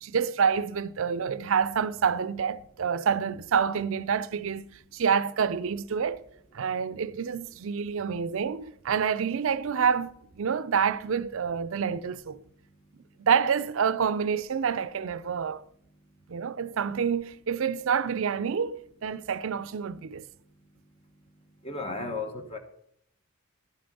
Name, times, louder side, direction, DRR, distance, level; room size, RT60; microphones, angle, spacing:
voice 1, 0.0-4.6 4.9-6.3 6.5-12.4 13.2-15.6 16.3-20.2, right 6 dB, 60° right, 0.4 m, -27 dB
voice 2, 21.6-22.6, left 3 dB, 25° left, 1.1 m, -34 dB
11.5 x 6.9 x 5.3 m
head